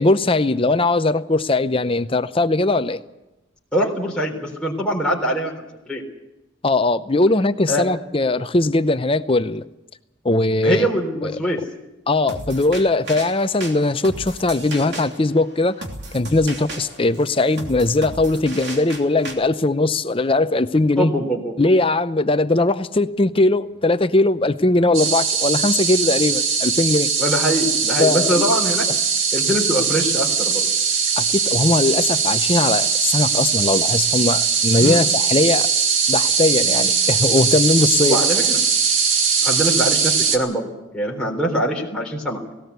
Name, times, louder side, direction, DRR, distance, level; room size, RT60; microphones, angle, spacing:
voice 1, 0.0-3.0 6.6-9.6 10.2-10.9 11.2-11.3 12.1-15.8 16.1-21.1 21.6-27.1 28.0-28.5 31.2-35.7 36.1-38.2, left 2 dB, 25° left, 12 dB, 0.6 m, -19 dB
voice 2, 3.7-5.5 5.9-6.1 7.7-7.9 10.6-11.6 21.0-21.4 27.2-28.8 29.3-30.6 34.8-35.0 38.0-38.6 39.4-40.6 40.9-42.4, equal, 5° left, -3 dB, 3.7 m, -22 dB
sound 1, 12.3-19.3, right 2 dB, 55° right, 3.1 m, -35 dB
sound 2, 24.9-40.4, right 6 dB, 75° right, 2.4 m, -20 dB
18.0 x 18.0 x 8.2 m, 0.96 s
head